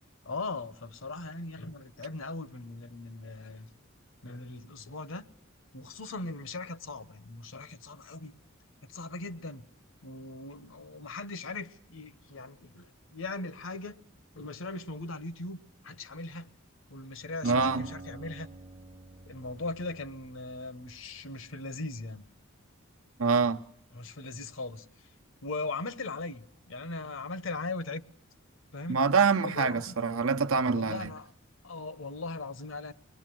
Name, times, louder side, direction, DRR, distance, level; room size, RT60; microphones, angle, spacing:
voice 1, 0.2-3.7 4.2-5.2 5.7-8.3 8.8-9.6 10.0-14.0 14.3-15.6 15.8-16.5 16.9-18.5 19.3-22.2 23.9-24.9 25.4-28.0 28.7-29.0 29.4-30.0 30.7-31.3 31.6-32.9, left 3 dB, 65° left, 0.9 m, -39 dB
Acoustic guitar, 17.4-21.5, right 2 dB, 35° right, 0.9 m, -48 dB
voice 2, 17.4-17.9 23.2-23.6 28.9-31.1, right 5 dB, 80° right, 0.9 m, -25 dB
25.0 x 20.5 x 7.7 m
head